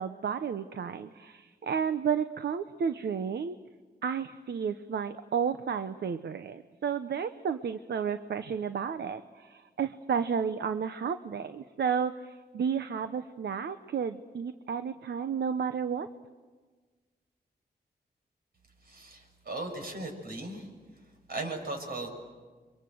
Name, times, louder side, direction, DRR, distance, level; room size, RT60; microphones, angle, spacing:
voice 1, 0.0-3.5 4.0-16.1, right 7 dB, 80° right, 10 dB, 0.8 m, -32 dB
voice 2, 18.8-20.7 21.3-22.1, right 2 dB, 65° right, 3 dB, 6.7 m, -37 dB
30.0 x 24.5 x 7.8 m, 1.4 s
wide cardioid pair, 105°, 17 cm